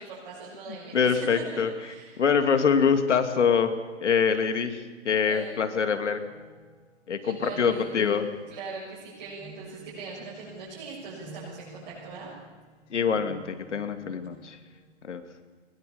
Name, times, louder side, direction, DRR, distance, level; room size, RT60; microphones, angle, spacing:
voice 1, 0.0-2.2 5.2-5.6 7.2-8.1 8.5-12.3, right 4 dB, 35° right, -7 dB, 7.2 m, -41 dB
voice 2, 0.9-1.7 2.2-6.2 7.1-8.3 12.9-14.6 15.0-15.2, left 6 dB, 70° left, 8 dB, 2.7 m, -24 dB
sound 1, 5.9-14.9, right 2 dB, 15° left, 4.2 m, -52 dB
22.0 x 21.5 x 7.1 m, 1.4 s
hypercardioid pair, 175°, 37 cm